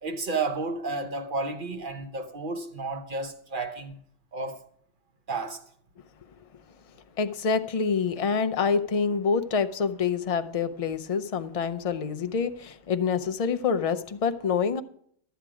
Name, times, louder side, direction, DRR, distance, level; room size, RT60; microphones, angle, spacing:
voice 1, 0.0-4.0 4.3-4.6 5.3-5.6, right 3 dB, 45° right, 1.1 m, -32 dB
voice 2, 7.2-14.8, left 6 dB, 45° left, 0.5 m, -26 dB
12.5 x 8.1 x 4.9 m
omnidirectional pair, 1.3 m